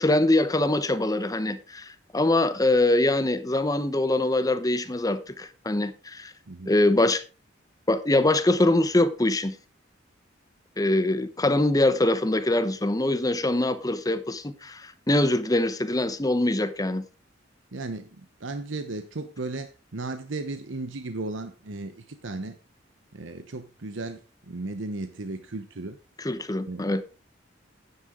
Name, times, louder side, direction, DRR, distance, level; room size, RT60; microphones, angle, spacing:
voice 1, 0.0-6.3 6.7-7.2 7.9-9.5 10.8-17.0 26.2-27.0, left 1 dB, 20° left, 0.8 m, -23 dB
voice 2, 17.7-22.6 23.1-26.0 26.7-26.8, right 2 dB, 80° right, 0.9 m, -35 dB
11.0 x 9.8 x 3.7 m
head